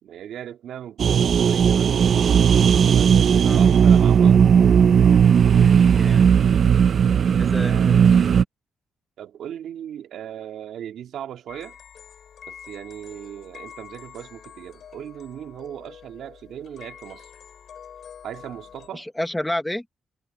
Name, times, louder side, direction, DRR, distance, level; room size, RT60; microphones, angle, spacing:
voice 1, 0.0-4.4 7.6-8.2 9.2-11.8 12.5-17.3 18.2-19.1, right 10 dB, 65° right, 2.7 m, -38 dB
sound 1, 1.0-8.4, right 7 dB, 45° right, 0.5 m, -16 dB
voice 2, 5.6-6.3 7.4-8.0 18.9-19.8, left 1 dB, 5° left, 1.2 m, -30 dB
sound 2, 11.5-18.9, left 8 dB, 50° left, 7.3 m, -46 dB
cardioid pair, 145°, 0 cm